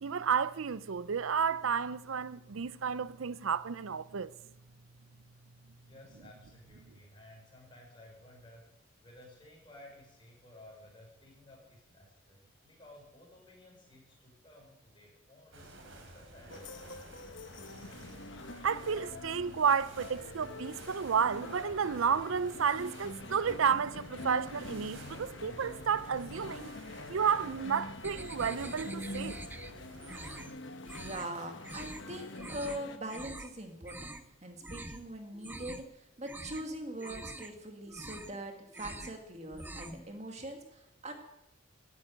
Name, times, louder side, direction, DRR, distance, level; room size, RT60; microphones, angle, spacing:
voice 1, 0.0-4.3 18.6-26.7 27.1-29.4, right 6 dB, 85° right, 0.5 m, -31 dB
voice 2, 5.9-8.7 9.0-17.1, left 1 dB, 25° left, 5.9 m, -56 dB
sound 1, 15.5-30.5, right 1 dB, 70° right, 3.6 m, -52 dB
sound 2, 16.5-33.0, left 2 dB, 65° left, 1.1 m, -46 dB
sound 3, 28.0-29.7 30.0-30.5 30.9-31.3 31.6-32.0 32.4-32.8 33.1-33.5 33.8-34.3 34.6-35.0 35.3-35.9 36.2-36.7 37.0-37.5 37.8-38.4 38.7-39.2 39.5-40.0, right 1 dB, 10° right, 0.9 m, -45 dB
voice 3, 31.0-34.2 34.4-41.1, right 1 dB, 35° right, 1.8 m, -42 dB
15.0 x 9.7 x 9.1 m
head